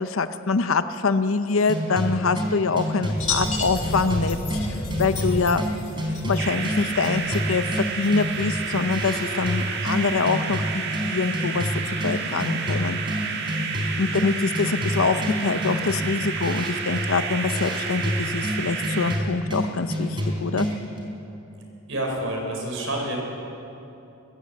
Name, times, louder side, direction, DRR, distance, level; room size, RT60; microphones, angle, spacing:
voice 1, 0.0-5.7 6.2-13.4 14.0-20.7, left 4 dB, 80° left, 11 dB, 0.7 m, -25 dB
sound 1, 1.7-21.0, equal, 25° right, 3.7 m, -29 dB
sound 2, 3.2-10.2, left 3 dB, 35° left, 2.3 m, -33 dB
sound 3, 6.3-19.2, right 5 dB, 55° right, 1.6 m, -31 dB
voice 2, 21.9-23.2, right 1 dB, 70° right, 0 dB, 4.6 m, -28 dB
21.5 x 16.0 x 7.6 m, 2.9 s
head